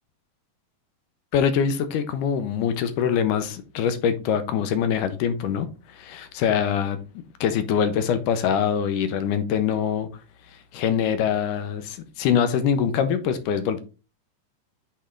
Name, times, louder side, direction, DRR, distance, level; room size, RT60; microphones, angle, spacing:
voice 1, 1.3-7.0 7.4-10.1 10.7-13.8, left 8 dB, 80° left, 2.3 m, -24 dB
8.7 x 3.3 x 3.7 m
omnidirectional pair, 3.7 m